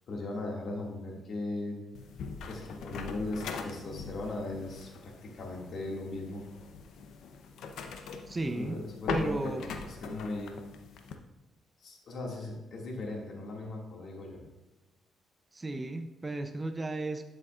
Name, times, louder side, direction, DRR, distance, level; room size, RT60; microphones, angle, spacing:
voice 1, 0.1-1.8 2.5-6.4 8.5-10.5 11.8-14.4, left 2 dB, 60° left, -1 dB, 2.2 m, -38 dB
sound 1, 2.0-11.2, left 5 dB, 80° left, 0.8 m, -41 dB
voice 2, 8.3-8.8 9.1-9.6 15.5-17.2, right 2 dB, 20° right, 7 dB, 0.6 m, -34 dB
12.0 x 6.5 x 2.5 m, 1.1 s
cardioid pair, 90°, 0 cm